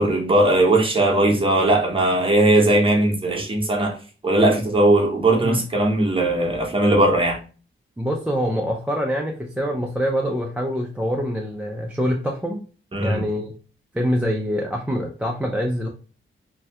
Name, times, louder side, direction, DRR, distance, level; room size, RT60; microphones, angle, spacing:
voice 1, 0.0-4.0 4.2-7.4 12.9-13.3, right 1 dB, 25° right, 0.8 m, -19 dB
voice 2, 8.0-12.6 13.0-13.5 13.9-15.9, equal, 5° right, 0.3 m, -25 dB
2.7 x 2.2 x 3.3 m
wide cardioid pair, 125°, 21 cm